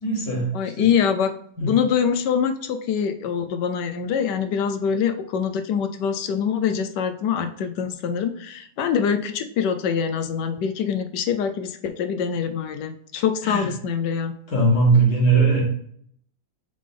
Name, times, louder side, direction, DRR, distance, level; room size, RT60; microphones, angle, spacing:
voice 1, 0.0-0.5 0.8-0.9 1.6-1.7 13.4-13.7 14.5-15.6, right 3 dB, 50° left, -2 dB, 2.2 m, -19 dB
voice 2, 0.5-1.3 1.6-14.3, left 7 dB, 70° left, 8 dB, 1.1 m, -24 dB
7.5 x 3.4 x 3.7 m, 0.63 s
omnidirectional pair, 2.1 m